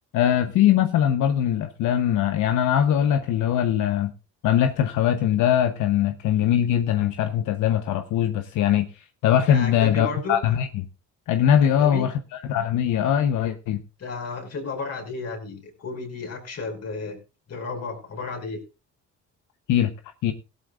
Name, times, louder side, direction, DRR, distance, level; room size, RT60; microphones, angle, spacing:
voice 1, 0.1-4.1 4.4-10.9 11.3-13.8 19.7-19.9 20.2-20.3, left 10 dB, 85° left, 8 dB, 1.0 m, -21 dB
voice 2, 9.5-10.4 11.6-12.1 14.0-17.2 17.5-18.6, left 3 dB, 55° left, 4 dB, 5.2 m, -33 dB
17.5 x 12.5 x 2.5 m, 0.29 s
cardioid pair, 90°, 30 cm